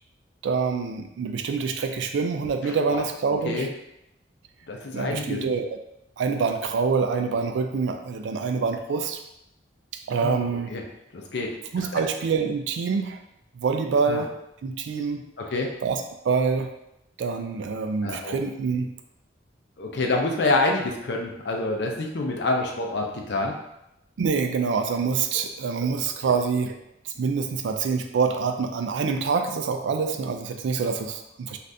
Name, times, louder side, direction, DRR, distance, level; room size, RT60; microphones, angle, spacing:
voice 1, 0.4-3.7 4.9-5.7 6.2-9.2 10.1-10.7 11.7-13.2 13.5-14.3 14.6-15.2 15.8-16.7 17.2-18.9 24.2-26.8 27.1-31.6, right 5 dB, 75° right, 6 dB, 0.3 m, -26 dB
voice 2, 4.7-5.4 10.2-10.4 10.7-10.8 11.1-11.5 14.1-14.2 15.5-15.7 18.0-18.4 19.8-23.6 26.2-26.3, left 2 dB, 65° left, 1 dB, 0.5 m, -26 dB
3.3 x 2.5 x 2.6 m, 0.84 s
head